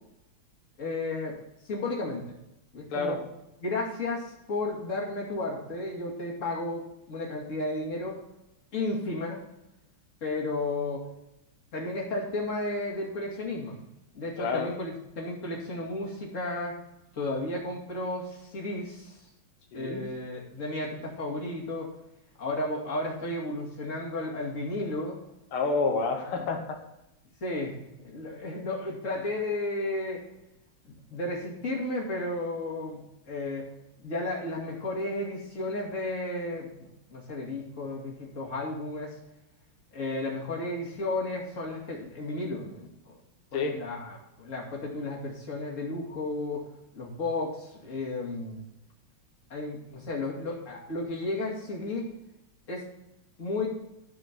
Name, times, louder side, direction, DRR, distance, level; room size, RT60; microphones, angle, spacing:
voice 1, 0.8-1.4 1.6-2.4 2.7-3.2 3.6-8.2 8.7-9.4 10.2-11.0 11.7-13.8 14.1-16.8 17.2-19.2 19.7-21.9 22.4-25.2 27.4-30.2 30.8-33.7 34.0-36.7 37.1-39.2 39.9-43.1 43.5-46.6 46.9-48.6 49.5-52.1 52.7-52.8 53.4-53.7, left 2 dB, 35° left, -3 dB, 2.7 m, -33 dB
voice 2, 14.4-14.7 19.7-20.0 25.5-26.8 43.5-43.8, left 4 dB, 90° left, 3 dB, 2.1 m, -28 dB
13.0 x 5.0 x 6.1 m, 0.89 s
omnidirectional pair, 2.3 m